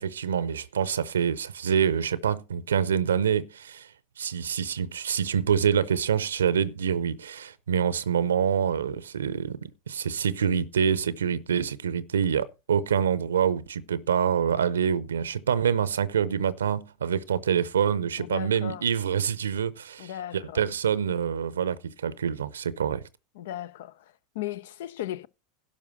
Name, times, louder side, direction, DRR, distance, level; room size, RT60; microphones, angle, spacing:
voice 1, 0.0-3.9 4.2-23.0, right 7 dB, 80° right, 0.6 m, -26 dB
voice 2, 18.2-18.9 20.0-20.7 23.3-25.3, left 12 dB, 65° left, 0.5 m, -37 dB
11.5 x 5.0 x 6.5 m
hypercardioid pair, 90°, 0 cm